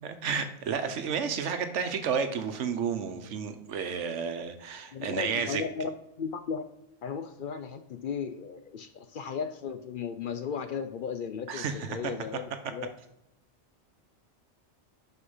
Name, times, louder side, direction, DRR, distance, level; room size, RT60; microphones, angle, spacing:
voice 1, 0.0-5.6 11.5-11.9, right 6 dB, 85° right, 8 dB, 1.1 m, -31 dB
voice 2, 4.9-6.6 7.0-12.9, left 6 dB, 60° left, 9 dB, 0.6 m, -36 dB
9.8 x 4.4 x 5.5 m, 0.84 s
omnidirectional pair, 1.2 m